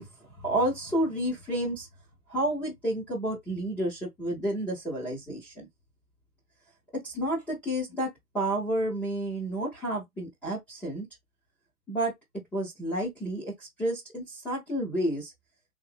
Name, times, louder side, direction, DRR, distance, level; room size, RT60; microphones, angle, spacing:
voice 1, 0.0-1.9 2.3-5.7 6.9-11.1 11.9-12.1 12.5-15.3, right 1 dB, 5° left, 0.4 m, -30 dB
3.4 x 2.6 x 3.4 m
hypercardioid pair, 130°, 43 cm